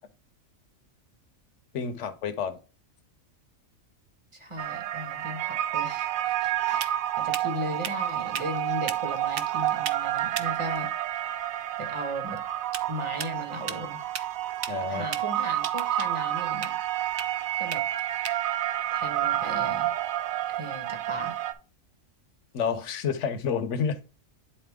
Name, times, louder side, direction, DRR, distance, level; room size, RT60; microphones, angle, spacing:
voice 1, 1.7-2.6 14.7-15.1 22.5-24.0, left 6 dB, 65° left, 1.1 m, -29 dB
voice 2, 4.3-10.9 11.8-12.4 12.9-14.0 14.9-17.1 17.6-17.8 18.9-19.9 20.6-21.4, equal, 25° right, 1.2 m, -37 dB
sound 1, 4.6-21.5, right 12 dB, 90° right, 1.1 m, -29 dB
sound 2, 5.7-20.2, right 8 dB, 55° right, 0.7 m, -41 dB
10.0 x 4.2 x 3.6 m
omnidirectional pair, 1.4 m